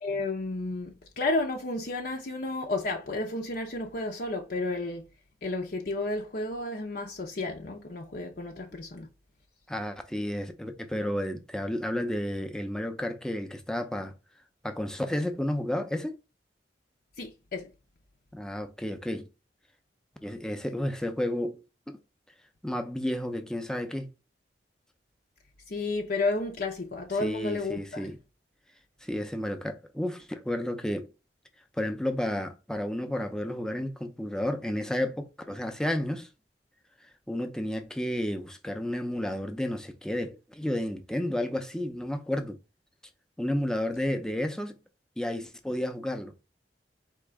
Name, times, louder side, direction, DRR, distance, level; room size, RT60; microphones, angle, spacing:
voice 1, 0.0-5.1 5.4-9.1 17.2-17.7 25.7-28.1, left 2 dB, 60° left, 0.7 m, -32 dB
voice 2, 9.7-14.1 14.6-16.2 18.3-19.3 20.2-22.0 22.6-24.1 27.2-28.2 29.0-31.1 31.8-36.3 37.3-42.6 43.4-44.8 45.2-46.3, left 1 dB, 5° left, 0.6 m, -32 dB
4.4 x 2.9 x 3.5 m
head